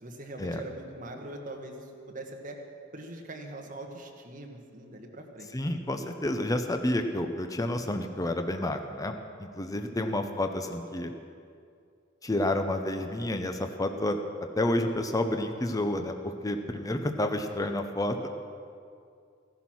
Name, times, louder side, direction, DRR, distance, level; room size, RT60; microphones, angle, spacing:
voice 1, 0.0-2.6 2.9-5.7 10.0-10.2, right 1 dB, 45° right, 2 dB, 1.5 m, -42 dB
voice 2, 5.5-11.1 12.2-14.2 14.6-18.2, left 1 dB, 20° left, 6 dB, 0.7 m, -30 dB
15.5 x 11.5 x 6.1 m, 2.4 s
head